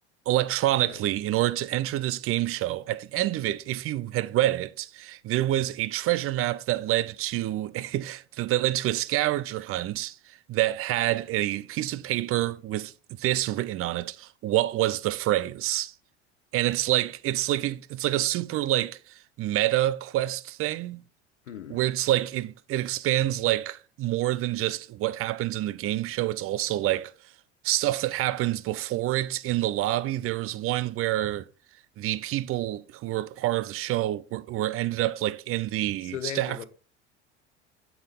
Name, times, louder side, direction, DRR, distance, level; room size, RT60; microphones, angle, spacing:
voice 1, 0.3-15.9 16.5-21.0 21.7-27.1 27.6-31.5 32.0-36.7, right 15 dB, 40° right, 0.6 m, -27 dB
voice 2, 21.4-21.8 36.0-36.7, left 10 dB, 85° left, 0.9 m, -37 dB
8.3 x 4.7 x 3.5 m
hypercardioid pair, 75°, 35 cm